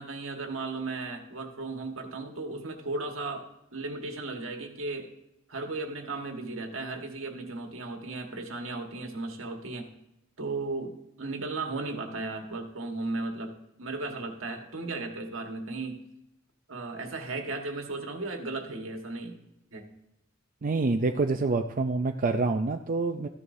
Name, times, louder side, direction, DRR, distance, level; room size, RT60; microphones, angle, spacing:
voice 1, 0.0-5.1 5.5-9.9 10.4-16.0 16.7-19.4 19.7-19.9, right 3 dB, 75° right, 3 dB, 1.5 m, -35 dB
voice 2, 20.6-23.3, right 3 dB, 40° right, 5 dB, 0.5 m, -27 dB
14.0 x 9.9 x 2.7 m, 0.85 s
head